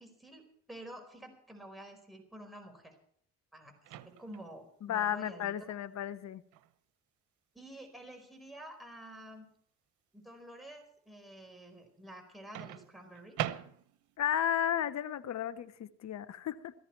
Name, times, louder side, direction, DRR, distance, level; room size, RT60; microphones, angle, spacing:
voice 1, 0.0-2.9 3.5-3.7 4.0-5.7 7.5-9.5 10.1-13.4, right 1 dB, ahead, 3 dB, 4.8 m, -50 dB
Microwave oven, 3.8-4.5 6.5-6.7 12.5-14.2, right 12 dB, 85° right, 0.9 m, -40 dB
voice 2, 4.8-6.4 14.2-16.7, left 10 dB, 65° left, 14 dB, 1.1 m, -33 dB
17.5 x 14.0 x 4.7 m, 0.63 s
cardioid pair, 90°, 30 cm